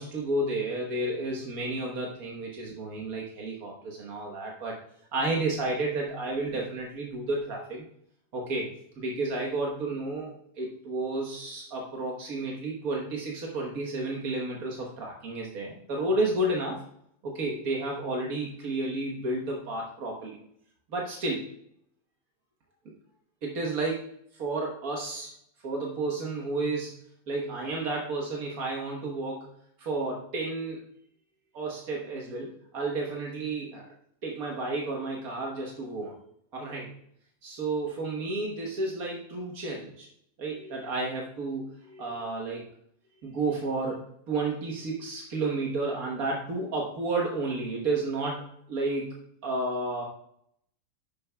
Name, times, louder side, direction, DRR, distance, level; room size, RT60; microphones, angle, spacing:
voice 1, 0.0-4.8 5.1-7.8 8.3-8.7 9.0-16.8 17.2-20.4 20.9-21.5 23.4-25.3 25.6-27.0 27.3-29.5 29.8-30.8 31.5-33.9 34.2-36.1 36.5-36.9 37.4-40.1 40.4-42.6 43.2-49.1 49.4-50.0, right 2 dB, 85° right, -1 dB, 1.7 m, -31 dB
10.0 x 7.5 x 2.3 m, 0.70 s
omnidirectional pair, 1.5 m